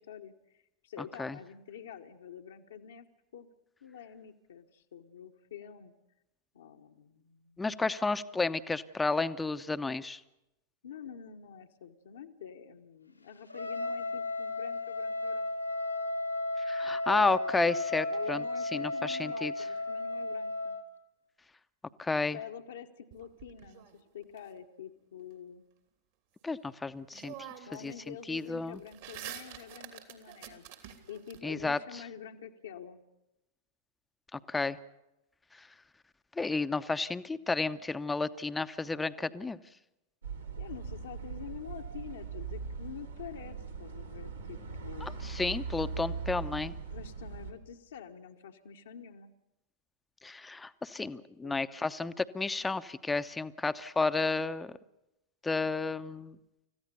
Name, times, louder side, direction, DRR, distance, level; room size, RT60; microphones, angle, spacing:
voice 1, 0.0-3.1 3.3-3.5 3.8-5.9 6.5-7.6 10.8-15.5 18.1-20.8 22.3-25.7 27.7-33.0 40.6-45.4 46.9-49.3 51.4-51.6, left 8 dB, 65° left, 2 dB, 1.1 m, -47 dB
voice 2, 7.6-10.2 16.7-18.4 18.7-19.5 22.0-22.4 26.4-27.5 27.8-28.8 31.4-31.8 34.3-34.8 36.4-39.6 45.0-46.7 50.2-54.7 55.4-56.4, left 3 dB, 10° left, 12 dB, 0.8 m, -32 dB
Trumpet, 13.5-20.8, left 2 dB, 90° left, 2.1 m, -34 dB
sound 1, 23.1-24.4 26.6-26.7 27.1-27.9 28.2-31.4, right 11 dB, 55° right, 2.7 m, -47 dB
sound 2, 40.2-47.5, right 5 dB, 80° right, 2.9 m, -40 dB
30.0 x 15.0 x 6.9 m, 0.93 s
figure-of-eight pair, 90°, 0 cm